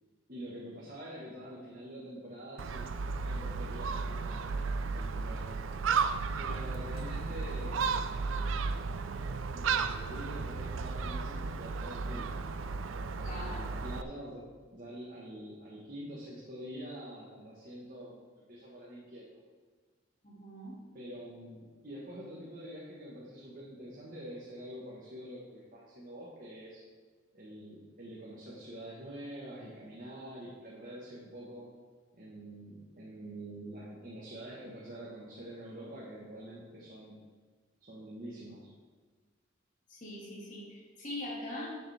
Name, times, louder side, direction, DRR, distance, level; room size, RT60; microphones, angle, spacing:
voice 1, 0.3-5.5 6.4-8.6 9.5-12.3 13.1-19.3 20.9-26.8 27.3-31.6 32.1-37.2 37.8-38.7, equal, 45° right, -5 dB, 1.4 m, -46 dB
Gull seagull, 2.6-14.0, right 4 dB, 85° right, 0.4 m, -34 dB
voice 2, 13.2-13.7 20.2-20.8 39.9-41.7, left 1 dB, 40° left, -3 dB, 2.2 m, -42 dB
11.0 x 6.7 x 3.5 m, 1.4 s
head